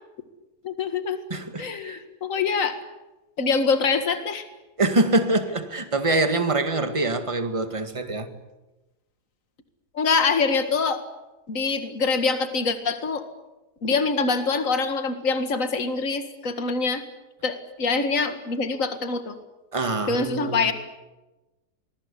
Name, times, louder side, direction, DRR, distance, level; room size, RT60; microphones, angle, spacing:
voice 1, 0.6-1.2 1.6-2.8 3.4-4.4 9.9-11.0 11.5-13.2 13.8-17.0 17.4-19.4 20.1-20.7, left 4 dB, 55° left, 2.3 m, -24 dB
voice 2, 1.3-2.0 4.8-8.3 19.7-20.7, right 2 dB, 20° right, 2.0 m, -24 dB
27.5 x 21.0 x 8.4 m
omnidirectional pair, 1.7 m